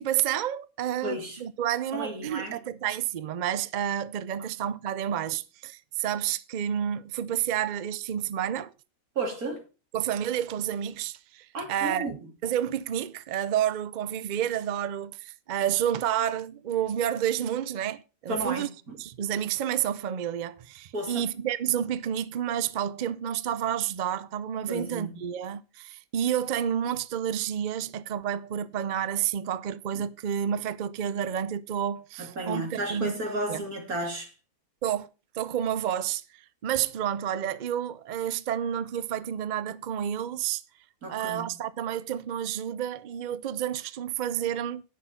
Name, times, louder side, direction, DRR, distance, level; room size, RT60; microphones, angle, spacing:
voice 1, 0.0-8.7 9.9-18.7 19.0-33.2 33.5-33.6 34.8-35.1 35.3-36.2 36.6-40.6 41.1-44.8, right 10 dB, 60° right, 0.4 m, -30 dB
voice 2, 1.0-1.4 1.9-2.6 9.2-9.6 11.5-12.2 18.3-19.0 20.9-21.3 24.7-25.1 32.2-34.3 41.0-41.5, right 2 dB, 85° right, 3.0 m, -33 dB
10.0 x 6.4 x 5.5 m
omnidirectional pair, 1.5 m